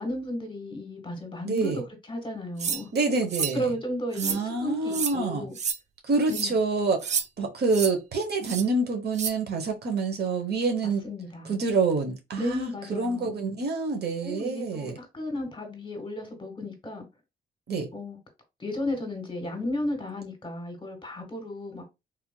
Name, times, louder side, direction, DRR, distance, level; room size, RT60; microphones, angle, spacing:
voice 1, 0.0-1.8 2.1-3.1 3.5-5.6 6.3-6.5 11.0-11.6 12.4-13.4 14.2-17.1 17.9-18.2 18.6-21.8, left 1 dB, 25° left, 1.4 m, -34 dB
voice 2, 1.5-1.8 2.9-3.7 4.2-5.5 6.0-11.0 11.5-14.9 17.7-17.9, right 3 dB, 60° right, 1.0 m, -27 dB
sound 1, 2.6-2.8 3.3-3.6 4.1-4.4 4.9-5.1 5.6-5.8 6.3-6.5 7.0-7.3 7.7-7.9 8.4-8.6 9.1-9.3, right 6 dB, 40° right, 0.4 m, -29 dB
3.5 x 3.0 x 2.2 m
cardioid pair, 75°, 19 cm